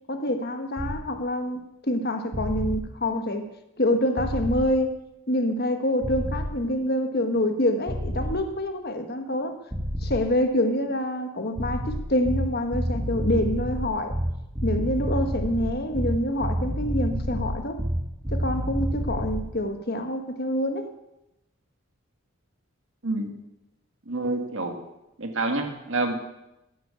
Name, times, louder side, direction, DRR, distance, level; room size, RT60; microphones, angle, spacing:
voice 1, 0.1-3.5 3.8-5.0 5.3-9.5 10.0-14.2 14.6-17.8 18.3-20.9, left 1 dB, 45° left, 6 dB, 1.4 m, -26 dB
sound 1, 0.8-1.0 2.3-2.8 4.2-4.6 6.0-6.6 7.9-8.4 9.7-10.2 11.6-19.5, equal, 15° right, 2.5 m, -28 dB
voice 2, 24.1-24.8 25.2-26.3, right 2 dB, 65° right, 4 dB, 2.1 m, -28 dB
14.0 x 9.4 x 6.9 m, 0.91 s
head